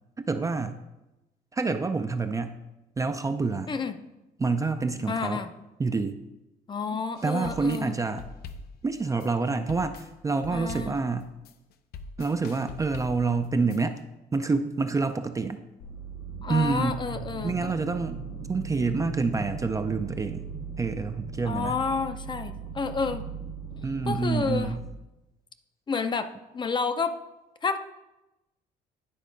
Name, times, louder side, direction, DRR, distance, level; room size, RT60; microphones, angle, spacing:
voice 1, 0.2-0.8 1.5-2.6 3.0-3.7 4.4-5.4 5.8-6.2 7.2-8.2 8.8-11.3 12.2-14.0 14.3-15.6 16.5-17.0 17.4-18.2 18.5-20.5 20.8-21.8 23.8-24.8, right 4 dB, 20° right, 8 dB, 0.4 m, -27 dB
voice 2, 5.1-5.5 6.7-7.9 10.5-11.0 16.4-17.5 21.5-23.3 24.1-24.7 25.9-26.3 26.5-27.1 27.6-27.8, left 5 dB, 25° left, 10 dB, 0.6 m, -30 dB
sound 1, 7.2-14.0, left 4 dB, 65° left, 0.7 m, -43 dB
sound 2, 15.8-24.9, right 4 dB, 90° left, 1.8 m, -38 dB
10.0 x 4.3 x 5.2 m, 0.98 s
cardioid pair, 110°, 17 cm